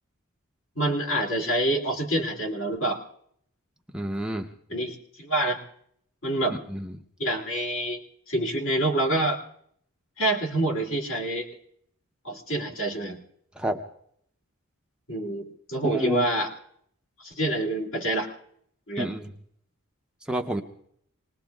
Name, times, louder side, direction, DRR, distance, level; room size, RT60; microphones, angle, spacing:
voice 1, 0.8-3.0 4.7-5.6 6.2-6.6 7.2-8.0 8.3-9.4 10.2-11.5 12.2-13.2 15.1-16.5 17.2-18.3 18.9-19.1, right 1 dB, 60° left, 0 dB, 2.6 m, -27 dB
voice 2, 3.9-4.5 6.7-6.9 13.6-13.8 15.8-16.3 19.0-19.3 20.3-20.6, equal, 5° right, 3 dB, 0.6 m, -29 dB
27.0 x 20.0 x 2.3 m, 0.68 s
head